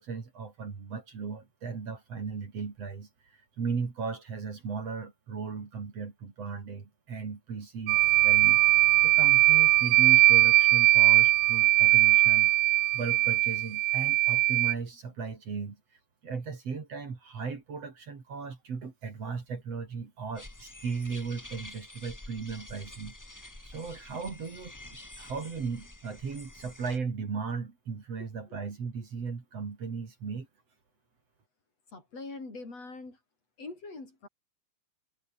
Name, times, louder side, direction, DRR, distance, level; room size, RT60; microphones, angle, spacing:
voice 1, 0.0-15.8 16.2-23.1 23.6-30.5, right 5 dB, 50° right, 4.4 m, -37 dB
sound 1, 7.9-14.7, right 20 dB, 85° right, 1.6 m, -21 dB
sound 2, 20.3-27.0, left 1 dB, 20° left, 0.5 m, -48 dB
voice 2, 28.2-28.6 31.9-33.2 33.6-34.3, left 3 dB, 50° left, 7.8 m, -43 dB
omnidirectional pair, 3.7 m